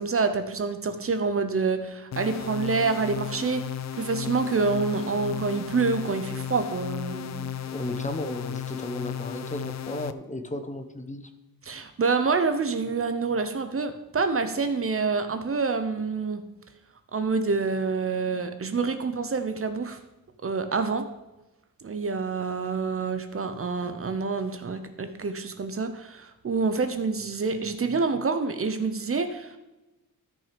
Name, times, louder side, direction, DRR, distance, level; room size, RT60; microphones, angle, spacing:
voice 1, 0.0-7.4 11.6-16.4 17.1-20.0 20.4-21.1 21.8-29.6, right 4 dB, 40° right, 9 dB, 0.8 m, -27 dB
sound 1, 2.1-10.1, left 8 dB, 50° left, 0.5 m, -35 dB
voice 2, 7.7-11.3, left 1 dB, 20° left, 7 dB, 0.9 m, -34 dB
13.5 x 6.1 x 5.1 m, 1.0 s
wide cardioid pair, 110°, 36 cm